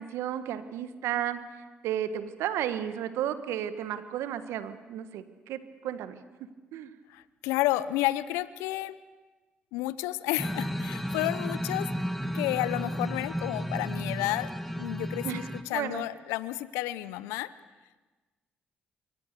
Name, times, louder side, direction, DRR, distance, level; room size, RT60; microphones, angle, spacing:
voice 1, 0.0-1.4 1.8-6.2 6.7-6.9 15.2-15.4 15.7-16.0, right 10 dB, 75° right, 11 dB, 1.4 m, -33 dB
voice 2, 7.1-9.0 9.7-11.9 12.3-17.5, left 16 dB, 80° left, 17 dB, 0.7 m, -31 dB
sound 1, 10.4-15.6, equal, ahead, 1.9 m, -33 dB
28.0 x 23.0 x 6.8 m, 1.2 s
hypercardioid pair, 45°, 5 cm